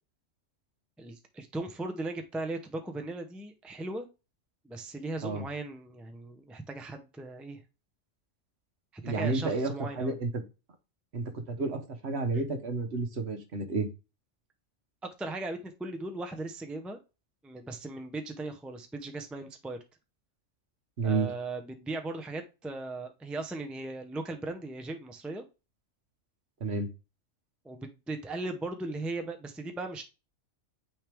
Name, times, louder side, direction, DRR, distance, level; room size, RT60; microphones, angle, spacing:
voice 1, 1.0-4.1 4.6-7.6 8.9-10.2 15.0-17.0 17.4-19.8 21.0-25.4 27.6-30.0, right 2 dB, ahead, 5 dB, 0.6 m, -38 dB
voice 2, 9.0-10.4 11.1-13.9 21.0-21.3 26.6-26.9, right 3 dB, 60° right, 6 dB, 1.3 m, -31 dB
9.1 x 3.3 x 3.4 m, 0.29 s
omnidirectional pair, 1.3 m